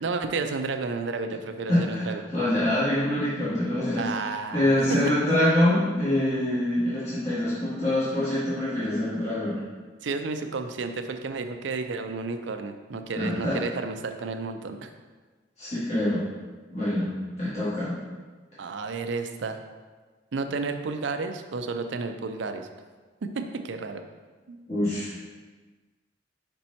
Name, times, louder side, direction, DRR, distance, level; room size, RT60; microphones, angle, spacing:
voice 1, 0.0-2.3 4.0-5.1 10.0-14.9 18.6-19.6 20.3-22.7 23.2-24.0 24.5-24.6, right 4 dB, 75° right, 7 dB, 0.5 m, -32 dB
voice 2, 1.7-4.1 4.5-9.6 13.1-13.6 15.6-16.2 16.7-17.1 17.4-18.0 24.7-25.1, left 1 dB, 35° left, -12 dB, 1.8 m, -25 dB
5.3 x 4.4 x 4.2 m, 1.3 s
head